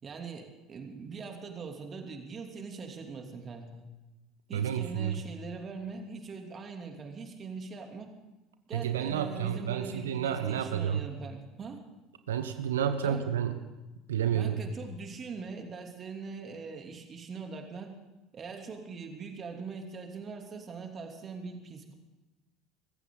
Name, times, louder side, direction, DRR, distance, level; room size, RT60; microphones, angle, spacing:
voice 1, 0.0-3.9 4.5-8.1 8.7-11.8 13.0-13.2 14.3-17.9 18.3-21.9, right 4 dB, 35° right, 3 dB, 2.8 m, -42 dB
voice 2, 4.5-5.2 8.7-11.1 12.3-13.6 14.1-14.7, right 9 dB, 75° right, 9 dB, 0.9 m, -30 dB
24.0 x 15.0 x 3.9 m, 1.1 s
figure-of-eight pair, 65°, 0 cm